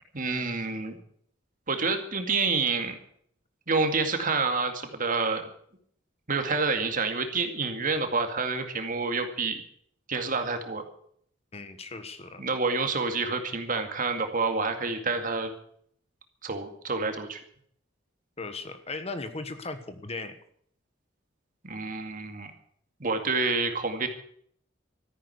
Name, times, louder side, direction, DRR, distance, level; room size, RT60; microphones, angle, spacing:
voice 1, 0.1-1.0 1.7-3.0 3.7-5.5 6.3-9.6 10.1-10.8 12.4-15.5 16.4-17.4 21.6-22.5 23.0-24.1, right 4 dB, 45° right, 6 dB, 2.2 m, -28 dB
voice 2, 11.5-12.4 18.4-20.4, left 3 dB, 30° left, 9 dB, 1.3 m, -37 dB
14.0 x 10.5 x 8.1 m, 0.64 s
head